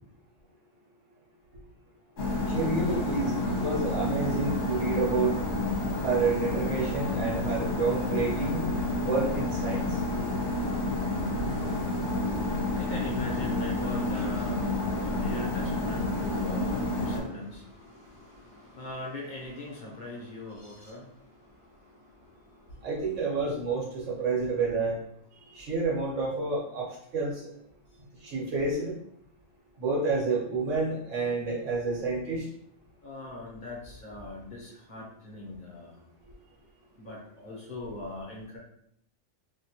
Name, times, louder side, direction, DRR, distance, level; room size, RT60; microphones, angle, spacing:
sound 1, 2.2-17.2, left 2 dB, 65° left, 1.2 m, -29 dB
voice 1, 2.5-5.4 6.0-8.6 9.0-10.0 22.8-25.0 25.4-27.5 28.2-28.9 29.8-32.5, right 4 dB, 85° right, 1.4 m, -29 dB
voice 2, 11.5-23.4 25.4-25.7 27.9-28.0 33.0-36.0 36.9-38.6, left 2 dB, 45° left, 0.9 m, -42 dB
3.0 x 2.8 x 2.8 m
omnidirectional pair, 1.3 m